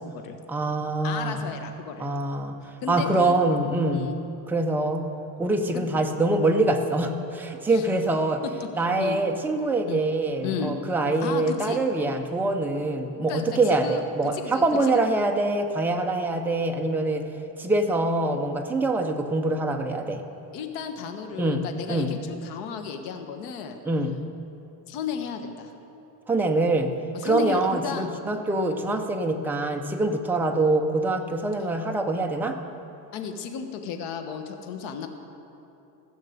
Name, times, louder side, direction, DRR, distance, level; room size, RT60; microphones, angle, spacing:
voice 1, 0.5-1.4 2.0-2.6 2.9-4.1 4.5-5.1 5.4-8.4 8.8-17.3 17.6-20.2 21.4-22.1 23.9-24.2 26.3-26.9 27.2-32.6, right 2 dB, 5° right, 3 dB, 0.3 m, -24 dB
voice 2, 1.0-2.1 2.8-3.3 3.9-4.2 5.7-5.9 7.7-7.8 8.6-8.7 9.0-9.2 9.9-10.0 10.4-10.7 11.2-11.8 13.3-14.0 14.3-14.6 14.9-15.0 20.5-23.8 24.9-25.7 27.1-28.1 28.6-28.8 33.1-35.1, left 7 dB, 75° left, 6 dB, 1.3 m, -33 dB
16.0 x 6.5 x 7.9 m, 2.9 s
cardioid pair, 165°, 43 cm